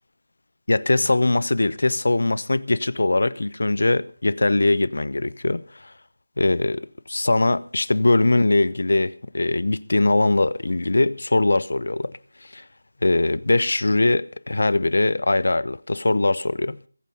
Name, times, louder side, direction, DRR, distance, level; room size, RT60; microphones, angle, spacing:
voice 1, 0.7-5.9 6.4-12.1 12.4-12.6 13.0-16.8, left 2 dB, 65° left, 0.7 m, -21 dB
22.5 x 9.1 x 5.2 m
figure-of-eight pair, 165°, 0 cm